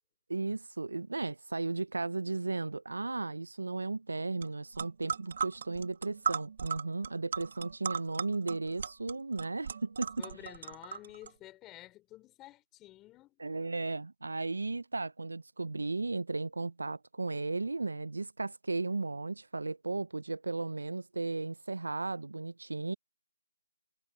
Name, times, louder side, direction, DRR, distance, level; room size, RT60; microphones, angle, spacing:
voice 1, 0.3-10.2 13.4-22.9, right 3 dB, 70° right, 0.6 m, -35 dB
sound 1, 4.4-4.5 4.7-11.3, right 6 dB, 40° right, 1.6 m, -37 dB
voice 2, 10.2-13.4, left 16 dB, 10° left, 3.5 m, -51 dB
figure-of-eight pair, 160°, 0 cm